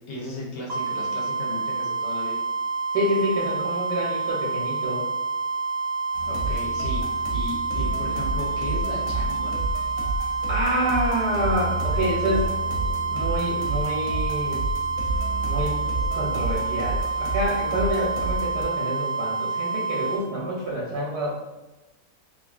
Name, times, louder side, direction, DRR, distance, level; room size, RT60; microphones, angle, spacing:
voice 1, 0.1-2.4 6.3-7.0 7.3-9.6, left 2 dB, 90° left, -3 dB, 1.4 m, -35 dB
sound 1, 0.7-20.2, right 4 dB, 55° right, 0.7 m, -28 dB
voice 2, 2.9-5.1 10.5-12.5 13.1-14.7 15.4-21.3, equal, 75° right, -4 dB, 1.2 m, -27 dB
sound 2, 6.1-18.6, right 2 dB, 70° left, 0.9 m, -30 dB
3.2 x 2.2 x 2.3 m, 1.1 s
omnidirectional pair, 1.8 m